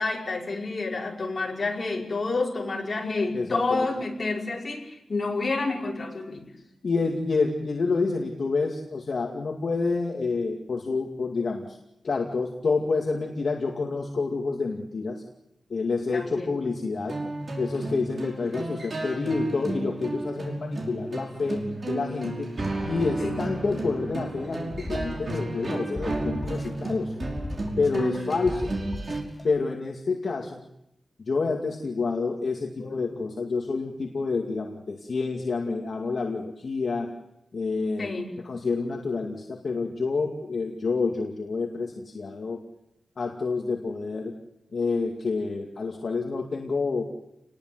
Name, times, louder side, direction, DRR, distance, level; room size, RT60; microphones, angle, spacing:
voice 1, 0.0-6.5 16.1-16.6 23.2-23.4 27.9-28.2 32.8-33.2 38.0-38.3, left 3 dB, 40° left, -1 dB, 5.5 m, -29 dB
voice 2, 3.3-3.9 6.8-11.6 12.0-15.2 15.7-17.2 17.6-22.5 22.9-27.1 27.8-28.7 29.4-30.6 31.2-37.1 37.5-38.1 38.4-42.6 43.2-44.3 44.7-47.0, left 4 dB, 55° left, 1 dB, 2.4 m, -28 dB
sound 1, 17.0-29.2, right 2 dB, 45° right, 5.5 m, -33 dB
sound 2, 24.7-25.7 26.0-26.9 27.2-28.2 28.5-29.4, left 1 dB, 20° left, 2.2 m, -36 dB
29.5 x 20.5 x 8.0 m, 0.85 s
wide cardioid pair, 165°, 0 cm